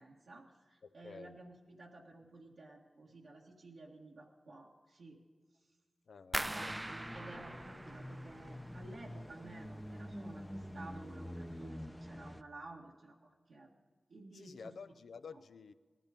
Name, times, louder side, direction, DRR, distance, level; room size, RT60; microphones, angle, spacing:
voice 1, 0.0-5.2 6.4-13.7 14.1-14.7, right 2 dB, 85° right, 1.8 m, -53 dB
voice 2, 0.8-1.4 6.1-7.0 14.3-15.7, left 5 dB, 85° left, 0.5 m, -51 dB
sound 1, 6.3-12.4, equal, 5° left, 0.7 m, -47 dB
sound 2, 6.3-9.2 9.5-10.2 10.5-11.0 11.4-11.5, right 1 dB, 20° right, 0.3 m, -42 dB
18.5 x 13.0 x 5.2 m
cardioid pair, 55°, 0 cm